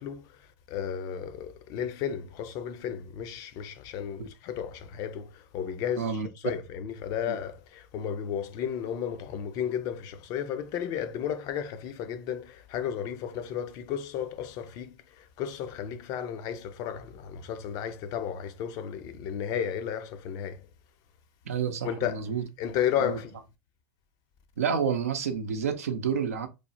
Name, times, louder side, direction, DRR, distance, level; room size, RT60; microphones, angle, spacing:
voice 1, 0.0-6.2 6.4-20.7 21.8-22.3 22.6-23.3, left 9 dB, 55° left, 0.5 m, -33 dB
voice 2, 6.0-6.3 7.3-7.4 21.5-22.4 23.0-23.2 24.6-26.5, right 6 dB, 90° right, 0.5 m, -29 dB
3.2 x 2.1 x 2.6 m
hypercardioid pair, 95°, 8 cm